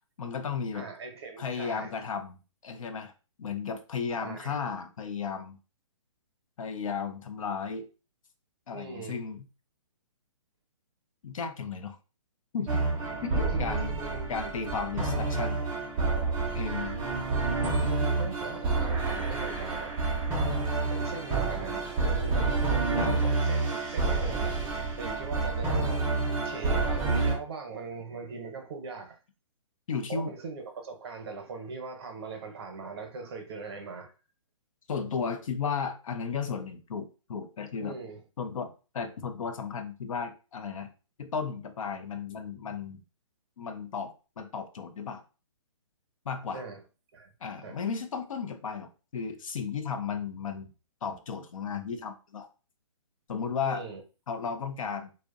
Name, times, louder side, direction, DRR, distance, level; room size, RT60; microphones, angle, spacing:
voice 1, 0.2-0.9 1.4-3.1 3.4-5.6 6.6-7.9 8.7-9.5 11.2-12.0 12.5-12.8 13.2-14.0 14.3-15.7 16.5-17.0 23.0-23.2 29.9-30.3 34.9-38.0 38.4-40.9 41.2-43.0 43.6-45.2 46.3-46.6 47.4-50.7 51.0-52.5 53.3-53.8 54.3-55.1, left 6 dB, 80° left, 0.5 m, -34 dB
voice 2, 0.7-1.9 4.2-4.6 8.7-9.2 13.3-14.5 17.9-20.0 20.9-26.1 26.4-29.2 30.1-34.1 37.8-38.2 46.5-46.8 47.1-47.3 47.6-47.8 53.6-54.0, right 4 dB, 50° right, 0.7 m, -40 dB
sound 1, 12.7-27.3, right 3 dB, 10° right, 0.3 m, -28 dB
2.5 x 2.1 x 2.3 m
hypercardioid pair, 155°, 17 cm